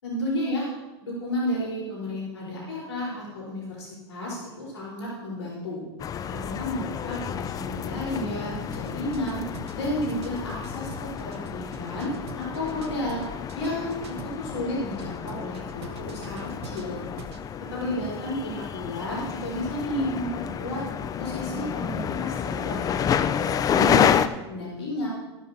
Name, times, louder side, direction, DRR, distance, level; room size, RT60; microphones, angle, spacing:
voice 1, 0.0-0.7 1.0-5.8 6.3-9.5 9.7-13.2 13.5-17.0 17.6-20.8 21.2-24.1 24.5-25.1, left 1 dB, 80° left, -6 dB, 4.3 m, -32 dB
sound 1, 6.0-24.3, left 8 dB, 25° left, 0.5 m, -29 dB
sound 2, 8.7-14.6 15.0-17.4, right 6 dB, 70° right, 1.1 m, -45 dB
13.5 x 11.5 x 2.8 m, 1.1 s
hypercardioid pair, 100°, 14 cm